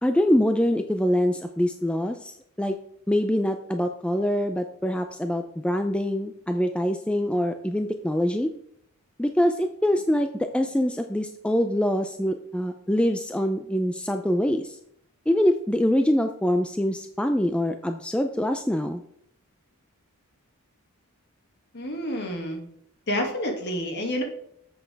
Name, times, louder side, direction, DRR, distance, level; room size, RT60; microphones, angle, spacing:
voice 1, 0.0-2.7 3.1-8.5 9.2-14.8 15.3-19.0, equal, 5° left, 7 dB, 0.4 m, -24 dB
voice 2, 21.7-22.6 23.1-24.2, equal, 50° left, 2 dB, 2.1 m, -28 dB
10.0 x 7.8 x 3.4 m, 0.70 s
head